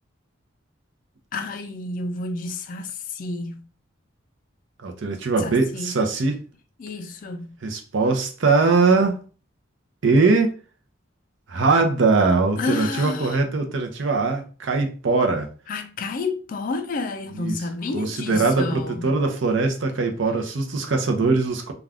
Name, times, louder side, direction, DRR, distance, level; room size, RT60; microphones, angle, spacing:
voice 1, 1.3-3.7 5.4-6.0 6.8-7.6 12.6-13.4 15.7-19.2, left 3 dB, 40° left, 0.3 m, -30 dB
voice 2, 4.8-6.4 7.6-9.2 10.0-10.5 11.5-15.5 17.4-17.6 17.9-21.7, right 3 dB, 65° right, 0.6 m, -21 dB
2.4 x 2.3 x 3.4 m
head